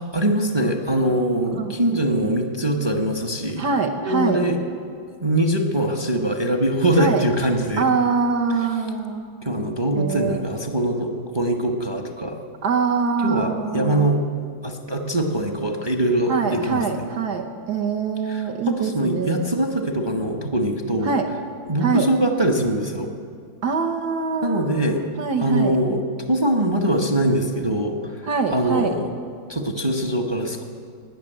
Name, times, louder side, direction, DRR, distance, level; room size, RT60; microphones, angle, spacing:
voice 1, 0.0-3.7 4.0-4.6 5.2-7.8 9.4-12.4 13.2-14.2 14.6-17.0 18.3-21.2 21.7-23.1 24.4-25.0 25.4-26.0 26.3-29.1 29.5-30.6, right 1 dB, 25° right, 4 dB, 0.6 m, -22 dB
voice 2, 3.6-4.4 7.0-7.3 7.8-9.3 9.9-10.5 12.6-14.1 16.3-19.5 21.0-21.3 21.8-22.1 23.6-25.8 28.3-29.0, right 5 dB, 60° right, 2 dB, 1.4 m, -24 dB
19.5 x 6.8 x 9.0 m, 2.1 s
omnidirectional pair, 2.1 m